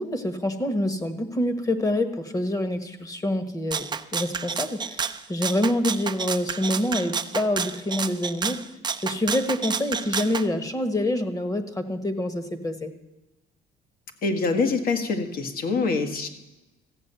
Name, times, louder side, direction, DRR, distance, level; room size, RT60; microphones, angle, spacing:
voice 1, 0.0-3.8 4.1-8.6 9.0-12.9, left 1 dB, 20° left, 9 dB, 1.4 m, -26 dB
Rattle (instrument), 3.7-10.5, right 6 dB, 25° right, 0.6 m, -30 dB
voice 2, 14.2-16.3, left 4 dB, 60° left, 7 dB, 1.7 m, -25 dB
14.5 x 8.6 x 6.9 m, 1.0 s
cardioid pair, 110°, 17 cm